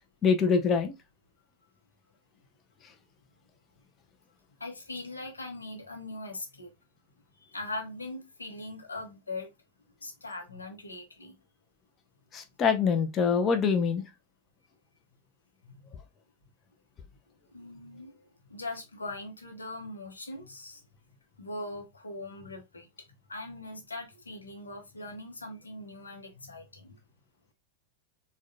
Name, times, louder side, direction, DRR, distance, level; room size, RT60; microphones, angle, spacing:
voice 1, 0.2-0.9 12.3-14.0, left 6 dB, 25° left, 0.4 m, -24 dB
voice 2, 4.6-6.7 7.4-9.5 10.0-11.3 17.5-18.1 18.5-20.8 21.4-22.9 23.3-27.0, left 2 dB, 75° left, 0.7 m, -41 dB
3.6 x 2.2 x 2.4 m
figure-of-eight pair, 90°, 0 cm